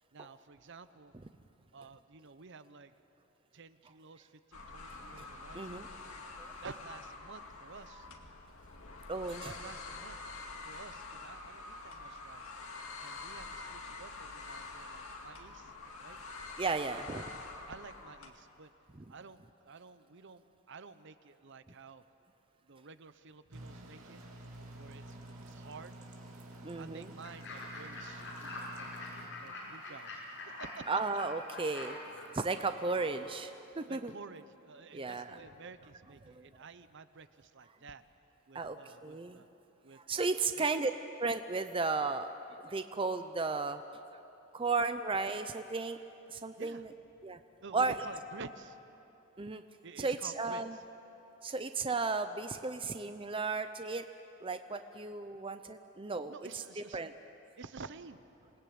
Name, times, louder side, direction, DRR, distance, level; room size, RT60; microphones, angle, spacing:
voice 1, 0.1-1.1 1.7-2.9 3.5-6.0 6.6-8.1 9.4-10.2 10.6-12.5 13.0-15.7 16.0-16.2 17.7-18.7 19.1-22.0 22.7-24.2 24.8-26.0 26.7-28.9 29.4-30.9 32.2-32.8 33.7-38.0 38.5-39.5 39.8-40.8 46.6-46.8 47.6-48.8 49.8-50.6 51.5-51.6 55.8-55.9 56.3-57.0 57.6-58.5, right 4 dB, 55° right, 12 dB, 0.8 m, -51 dB
sound 1, 4.5-18.3, left 3 dB, 80° left, 2.2 m, -46 dB
voice 2, 5.5-5.9 6.4-6.5 9.1-9.5 16.6-17.3 26.6-27.1 30.9-32.0 32.3-34.1 34.9-35.4 36.3-36.5 38.5-39.4 40.0-40.9 41.2-42.3 42.6-43.8 44.1-44.2 44.5-46.0 46.3-46.9 47.2-47.4 47.7-47.9 49.4-49.6 50.0-50.8 51.4-54.0 54.4-57.1, right 4 dB, 25° right, 9 dB, 0.6 m, -34 dB
sound 2, 23.5-29.3, right 1 dB, 75° right, 2.7 m, -49 dB
Fowl / Bird, 27.2-33.4, left 2 dB, 60° left, 7.6 m, -46 dB
27.5 x 19.0 x 8.6 m, 2.9 s
head